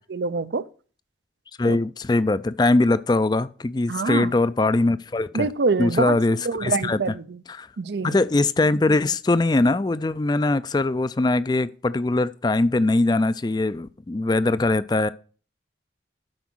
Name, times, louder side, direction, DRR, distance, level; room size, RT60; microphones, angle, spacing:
voice 1, 0.1-0.6 1.7-1.8 3.9-4.3 5.3-6.2 6.4-7.4 7.8-8.2, right 4 dB, 70° right, 0.5 m, -25 dB
voice 2, 1.6-5.5 5.8-7.0 7.5-7.7 8.0-15.1, left 2 dB, 25° left, 0.3 m, -21 dB
12.0 x 5.0 x 6.2 m
head